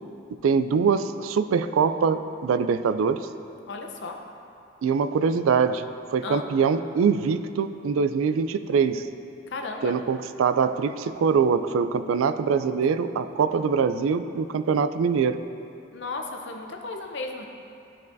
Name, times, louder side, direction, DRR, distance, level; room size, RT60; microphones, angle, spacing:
voice 1, 0.4-3.3 4.8-9.1 9.8-15.4, right 6 dB, 90° right, 12 dB, 0.3 m, -23 dB
voice 2, 3.7-4.2 6.2-6.4 9.5-10.0 15.9-17.5, left 3 dB, 60° left, 3 dB, 0.6 m, -34 dB
12.5 x 5.4 x 2.6 m, 2.8 s
head